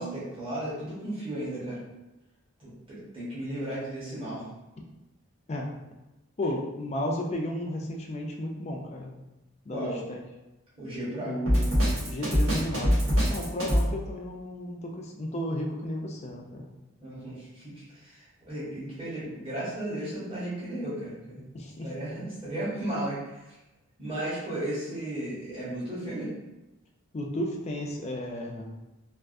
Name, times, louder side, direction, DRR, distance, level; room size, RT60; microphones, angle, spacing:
voice 1, 0.0-1.8 2.6-4.4 9.7-10.0 10.8-11.3 17.0-21.4 21.8-23.5 24.0-26.3, right 1 dB, 25° right, -10 dB, 1.1 m, -35 dB
voice 2, 6.4-9.2 9.7-10.2 11.2-16.7 21.5-21.9 27.1-28.8, left 1 dB, 30° left, 0 dB, 0.3 m, -33 dB
Drum kit, 11.5-13.9, equal, 65° right, 1.2 m, -23 dB
3.4 x 2.4 x 2.5 m, 1.0 s
head